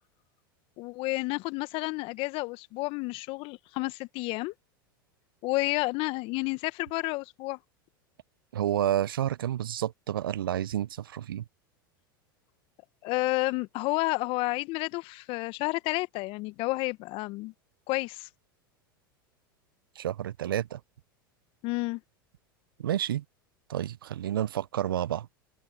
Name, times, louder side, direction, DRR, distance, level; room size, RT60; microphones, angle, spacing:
voice 1, 0.8-4.5 5.4-7.6 13.0-17.5 17.9-18.3 21.6-22.0, left 23 dB, 50° left, 1.4 m, -30 dB
voice 2, 8.5-11.4 20.0-20.8 22.8-23.2 23.7-25.3, right 11 dB, 75° right, 0.6 m, -30 dB
open air
hypercardioid pair, 85°, 12 cm